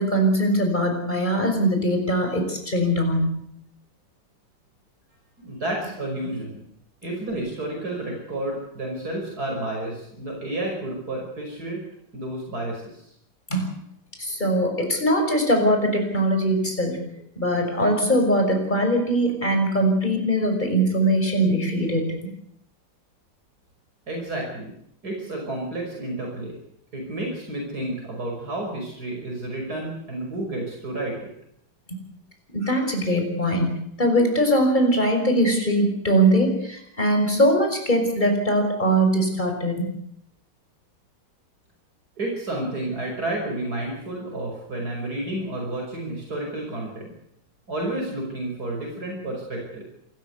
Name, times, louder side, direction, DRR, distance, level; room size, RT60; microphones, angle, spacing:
voice 1, 0.0-3.4 13.5-13.7 14.2-17.0 17.4-22.3 32.5-39.9, right 1 dB, 25° left, 4 dB, 6.0 m, -21 dB
voice 2, 5.4-6.6 7.0-11.8 12.1-13.0 24.1-24.7 25.0-26.5 26.9-31.3 42.2-47.1 47.7-49.9, right 1 dB, 55° right, 0 dB, 6.0 m, -31 dB
27.5 x 14.0 x 8.2 m, 0.74 s
omnidirectional pair, 2.0 m